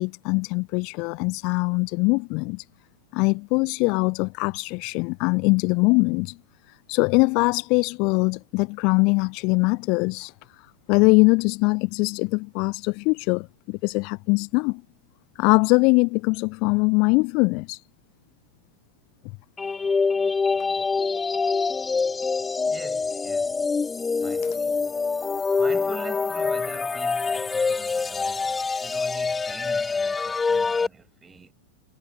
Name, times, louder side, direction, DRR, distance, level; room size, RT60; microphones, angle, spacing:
voice 1, 0.0-2.6 3.1-6.4 6.9-14.8 15.4-17.8, left 30 dB, 45° left, 0.9 m, -22 dB
sound 1, 19.6-30.9, left 4 dB, 15° left, 0.4 m, -25 dB
voice 2, 22.6-23.7 24.2-24.9 25.3-31.5, right 5 dB, 15° right, 7.6 m, -44 dB
figure-of-eight pair, 90°, 0 cm